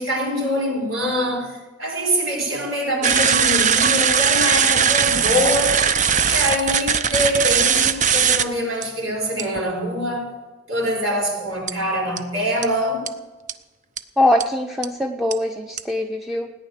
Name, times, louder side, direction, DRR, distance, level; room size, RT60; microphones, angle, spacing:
voice 1, 0.0-5.8 6.2-10.3 10.7-13.1, equal, 90° right, 5.0 m, -24 dB
sound 1, 3.0-8.4 8.8-8.9 9.4-9.6 11.7-11.8 12.2-12.3 12.6-12.7 13.1-13.2 13.5-13.6 14.0-14.1 14.4-14.5 14.8-14.9 15.3-15.4 15.8-15.9, right 7 dB, 40° right, 0.6 m, -19 dB
voice 2, 14.2-16.5, left 1 dB, ahead, 0.7 m, -22 dB
17.5 x 10.0 x 6.6 m
head